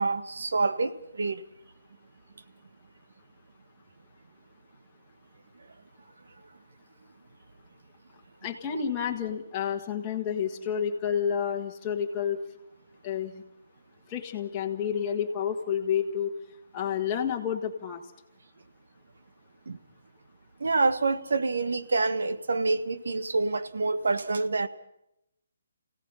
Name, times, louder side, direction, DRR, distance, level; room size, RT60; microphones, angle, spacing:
voice 1, 0.0-1.4 19.7-19.8 20.6-24.7, right 3 dB, 80° right, 1.5 m, -27 dB
voice 2, 8.4-12.4 13.0-13.4 14.1-16.3 16.7-18.0, left 8 dB, 15° left, 1.6 m, -30 dB
27.5 x 17.0 x 5.7 m
hypercardioid pair, 175°, 0 cm